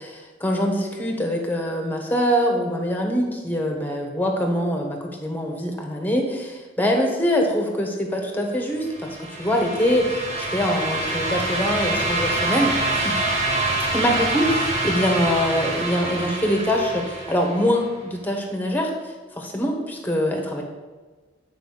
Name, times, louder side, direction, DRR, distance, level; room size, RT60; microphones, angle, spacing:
voice 1, 0.0-13.2 13.9-18.9 19.4-20.6, equal, 10° left, 2 dB, 1.2 m, -24 dB
sound 1, 8.9-17.8, right 2 dB, 40° right, 1.9 m, -26 dB
9.0 x 5.0 x 5.0 m, 1.3 s
head